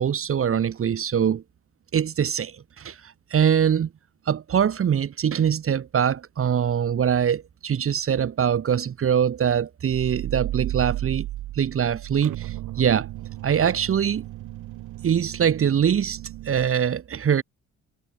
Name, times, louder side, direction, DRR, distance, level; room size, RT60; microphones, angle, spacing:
voice 1, 0.0-1.4 1.9-3.9 4.3-11.3 11.5-13.1 13.4-14.2 15.0-16.2 16.4-17.4, right 8 dB, 45° right, 1.3 m, -23 dB
sound 1, 9.9-16.7, right 15 dB, 85° right, 2.0 m, -34 dB
cardioid pair, 90°, 30 cm